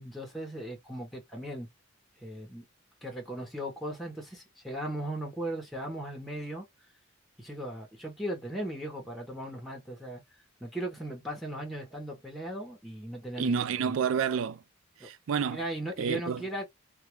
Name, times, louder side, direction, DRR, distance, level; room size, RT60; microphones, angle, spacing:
voice 1, 0.0-1.7 2.2-2.6 3.0-6.6 7.4-10.2 10.6-13.6 15.0-15.1 15.5-16.7, right 1 dB, ahead, 0.7 m, -37 dB
voice 2, 13.4-14.6 15.0-15.6 16.0-16.5, right 7 dB, 80° right, 0.4 m, -29 dB
2.3 x 2.2 x 2.9 m
head